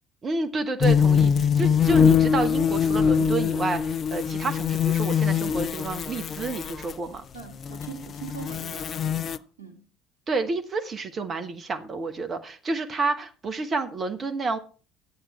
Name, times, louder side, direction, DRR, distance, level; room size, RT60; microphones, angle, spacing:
voice 1, 0.2-7.2 10.3-14.6, right 3 dB, 35° right, 1.2 m, -29 dB
sound 1, 0.8-6.9 7.5-9.4, left 7 dB, 40° left, 0.5 m, -23 dB
voice 2, 7.3-9.9, right 7 dB, 80° right, 1.8 m, -42 dB
12.5 x 8.6 x 4.4 m
figure-of-eight pair, 55°, 0 cm